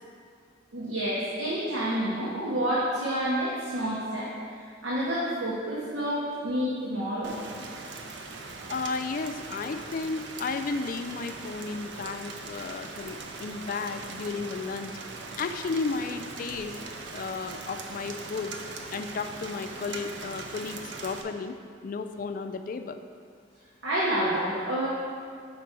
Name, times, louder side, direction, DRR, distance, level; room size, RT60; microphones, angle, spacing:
voice 1, 0.7-7.3 23.8-24.9, right 1 dB, 85° right, -7 dB, 1.1 m, -29 dB
Rain, 7.2-21.2, right 3 dB, 65° right, 0.6 m, -40 dB
voice 2, 8.7-14.9 15.4-16.8 17.1-18.5 18.9-21.6 21.8-23.0, left 4 dB, 45° left, 8 dB, 0.3 m, -33 dB
5.1 x 4.5 x 6.0 m, 2.1 s
head